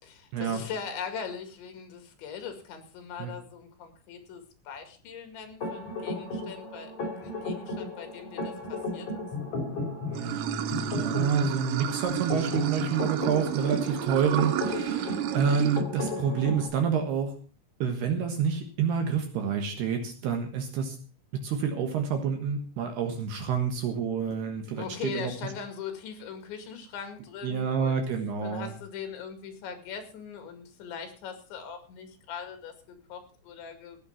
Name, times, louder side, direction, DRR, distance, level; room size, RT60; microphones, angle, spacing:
voice 1, 0.0-6.9 7.2-9.3 24.8-27.9 28.4-34.0, left 7 dB, 65° left, 7 dB, 4.2 m, -40 dB
sound 1, 5.6-16.7, left 2 dB, 40° left, 5.8 m, -35 dB
voice 2, 10.1-17.3 17.8-21.0 21.4-25.3 27.4-28.7, right 6 dB, 65° right, 5 dB, 3.0 m, -28 dB
Water / Sink (filling or washing), 10.1-15.8, right 11 dB, 85° right, 3.7 m, -32 dB
16.5 x 9.0 x 5.8 m, 0.39 s
omnidirectional pair, 5.9 m